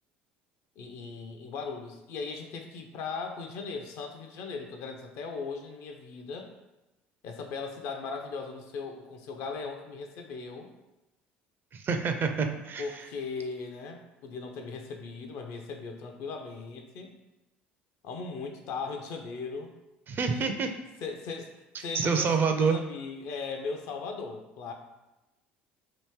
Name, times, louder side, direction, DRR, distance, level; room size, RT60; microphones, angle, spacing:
voice 1, 0.8-6.5 7.2-10.7 12.8-17.2 18.0-19.7 20.3-20.5 21.0-21.5 21.8-24.7, left 4 dB, 60° left, 4 dB, 0.5 m, -38 dB
voice 2, 11.7-13.0 20.1-20.7 21.9-22.8, right 5 dB, 40° right, 6 dB, 0.4 m, -27 dB
2.9 x 2.6 x 3.5 m, 0.99 s
hypercardioid pair, 60°, 6 cm